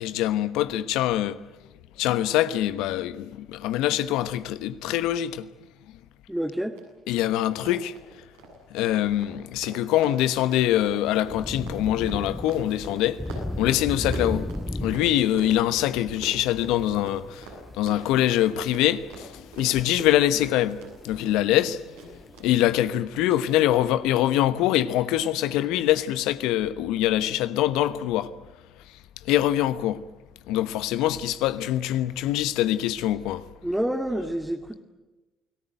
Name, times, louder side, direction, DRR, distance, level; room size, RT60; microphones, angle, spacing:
voice 1, 0.0-1.4 2.0-5.5 7.1-7.9 8.7-13.2 13.6-14.5 14.8-17.5 17.8-20.8 21.0-28.3 29.3-30.0 30.5-33.4, left 13 dB, 75° left, 1.1 m, -24 dB
voice 2, 6.3-6.8 33.6-34.8, right 1 dB, 5° right, 2.3 m, -28 dB
Run, 6.7-6.8 7.1-7.2 7.5-15.0 15.3-21.7 22.0-22.5 22.8-22.9 23.3-23.4, right 4 dB, 85° right, 7.6 m, -42 dB
Thunder / Rain, 10.5-22.9, left 1 dB, 10° left, 1.7 m, -37 dB
29.0 x 18.5 x 9.1 m
hypercardioid pair, 55°, 0 cm